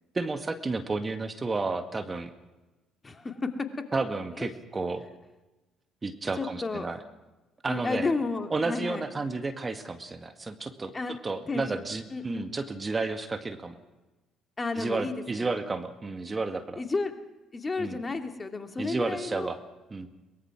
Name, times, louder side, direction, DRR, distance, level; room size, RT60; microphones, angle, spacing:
voice 1, 0.1-2.3 3.9-5.1 6.0-7.0 7.6-8.1 8.5-10.9 11.2-13.8 14.8-16.8 17.8-18.0 18.8-19.6 19.9-20.1, right 3 dB, 30° right, 8 dB, 2.0 m, -32 dB
voice 2, 3.0-3.7 3.9-4.0 4.3-4.5 6.4-6.9 7.7-9.0 10.9-11.2 11.5-11.8 12.1-12.5 14.6-15.5 16.8-17.1 17.5-19.5, left 3 dB, 30° left, 6 dB, 2.6 m, -32 dB
23.0 x 21.0 x 6.1 m, 1.1 s
hypercardioid pair, 55°, 0 cm